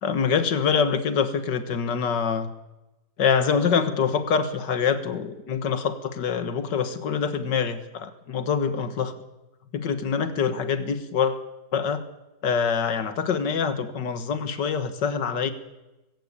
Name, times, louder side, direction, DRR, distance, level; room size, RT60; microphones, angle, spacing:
voice 1, 0.0-2.5 3.2-9.1 9.7-11.4 11.7-12.0 12.4-15.5, left 6 dB, 85° left, 10 dB, 2.1 m, -25 dB
20.5 x 16.5 x 8.6 m, 1.0 s
omnidirectional pair, 1.8 m